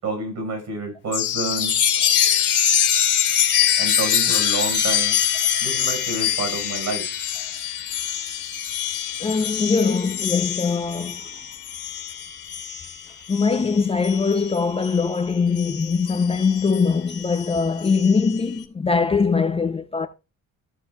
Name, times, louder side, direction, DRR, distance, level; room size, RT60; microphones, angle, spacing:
voice 1, 0.0-1.7 3.8-5.2 5.6-7.1, right 3 dB, 60° right, 4.8 m, -29 dB
Chime, 1.1-15.1 15.6-18.4, left 9 dB, 45° left, 2.8 m, -24 dB
voice 2, 9.2-11.2 13.3-20.1, left 5 dB, 20° left, 0.5 m, -22 dB
14.5 x 7.3 x 2.2 m
cardioid pair, 135°, 32 cm